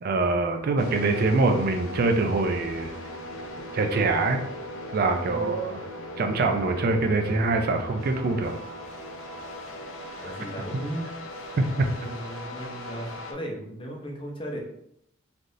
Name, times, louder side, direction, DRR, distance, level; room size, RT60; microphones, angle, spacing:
voice 1, 0.0-2.9 3.7-4.4 4.9-5.8 6.2-8.5 10.2-10.3 11.6-11.9, right 3 dB, 50° right, 5 dB, 0.4 m, -24 dB
sound 1, 0.8-13.3, left 1 dB, 85° left, 0.5 m, -39 dB
voice 2, 5.3-5.6 10.2-11.0 11.9-14.6, equal, 25° left, 0 dB, 0.6 m, -36 dB
3.3 x 2.4 x 2.6 m, 0.73 s
head